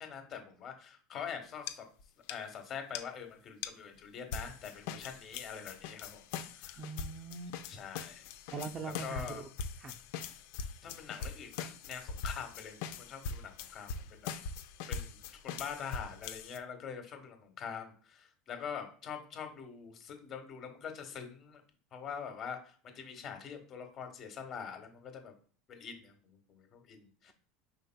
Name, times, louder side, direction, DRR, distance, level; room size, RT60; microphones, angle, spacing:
voice 1, 0.0-1.9 2.3-6.3 6.5-6.8 7.7-8.3 8.8-9.4 10.8-14.3 14.9-15.2 15.4-21.6 21.9-25.3 25.7-27.3, left 7 dB, 40° left, 6 dB, 1.3 m, -44 dB
sound 1, 1.7-1.8 2.0-2.1 2.3-2.4 2.9-3.0 3.6-3.7 4.3-16.6, left 6 dB, 75° left, 0.6 m, -42 dB
voice 2, 6.8-7.6 8.5-9.5 9.8-9.9, right 4 dB, 30° right, 8 dB, 0.5 m, -41 dB
5.1 x 4.3 x 2.3 m, 0.43 s
supercardioid pair, 130°, 0 cm